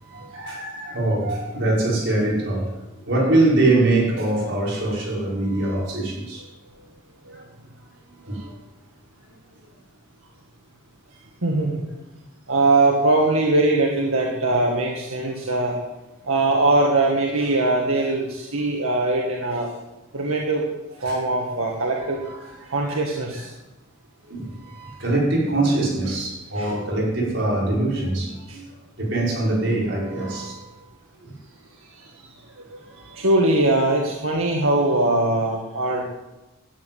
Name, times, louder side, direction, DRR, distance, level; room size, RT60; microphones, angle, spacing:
voice 1, 0.0-2.8 3.1-6.4 7.3-7.4 8.3-8.5 21.1-21.2 22.2-22.9 24.2-28.6 29.0-30.7 31.2-31.3 33.0-33.1, right 2 dB, 65° right, -4 dB, 5.8 m, -23 dB
voice 2, 11.4-11.8 12.5-15.7 16.3-19.7 20.1-20.6 21.0-22.2 22.7-23.5 26.6-26.7 28.5-28.6 32.7-32.8 33.1-36.1, right 2 dB, 90° right, -1 dB, 2.0 m, -21 dB
12.5 x 8.4 x 9.4 m, 0.99 s
head